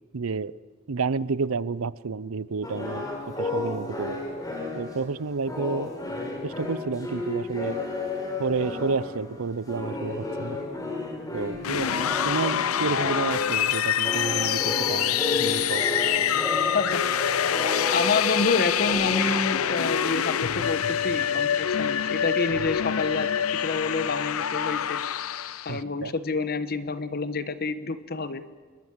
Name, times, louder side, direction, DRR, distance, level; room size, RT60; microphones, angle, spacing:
voice 1, 0.1-0.5 0.9-3.1 3.4-4.2 4.7-5.9 6.4-7.8 8.4-10.6 11.3-15.8 25.7-26.1, right 4 dB, 75° right, 19 dB, 0.6 m, -30 dB
sound 1, 2.6-13.7 14.0-20.8, left 2 dB, 20° left, 4.5 m, -32 dB
sound 2, 11.6-25.8, left 9 dB, 80° left, 0.6 m, -26 dB
voice 2, 17.9-25.0 25.6-28.4, left 3 dB, 45° left, 12 dB, 1.2 m, -28 dB
26.5 x 21.0 x 7.5 m, 1.5 s
head